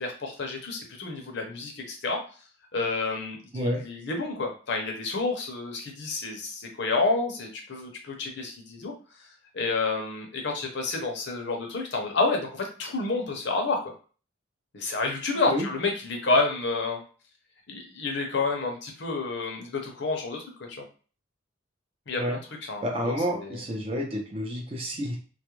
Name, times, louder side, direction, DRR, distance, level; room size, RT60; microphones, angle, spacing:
voice 1, 0.0-2.2 2.7-8.9 9.5-13.8 14.7-17.0 17.7-20.8 22.1-22.4 22.7-23.6, left 3 dB, 60° left, 2 dB, 0.6 m, -29 dB
voice 2, 22.8-25.2, equal, 30° right, 0 dB, 0.6 m, -29 dB
2.3 x 2.1 x 3.0 m, 0.38 s
head